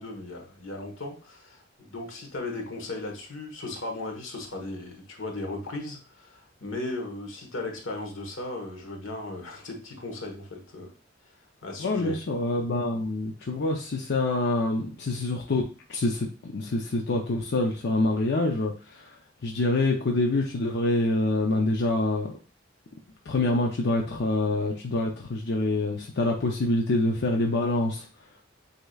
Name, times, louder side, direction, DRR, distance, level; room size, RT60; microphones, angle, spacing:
voice 1, 0.0-10.9 11.6-12.2, left 2 dB, 85° left, 3 dB, 1.3 m, -36 dB
voice 2, 11.8-15.6 15.9-19.2 19.4-22.3 23.3-28.1, left 2 dB, 60° left, 0 dB, 0.6 m, -26 dB
7.9 x 2.9 x 2.3 m, 0.37 s
head